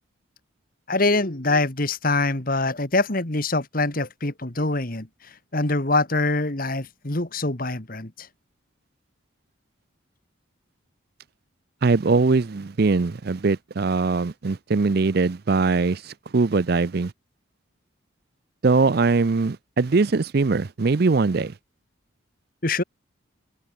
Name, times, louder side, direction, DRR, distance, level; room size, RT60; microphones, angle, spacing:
voice 1, 0.9-5.1 5.5-8.3 22.6-22.8, left 2 dB, 45° left, 2.2 m, -24 dB
voice 2, 11.8-17.1 18.6-21.5, right 4 dB, 50° right, 0.5 m, -21 dB
head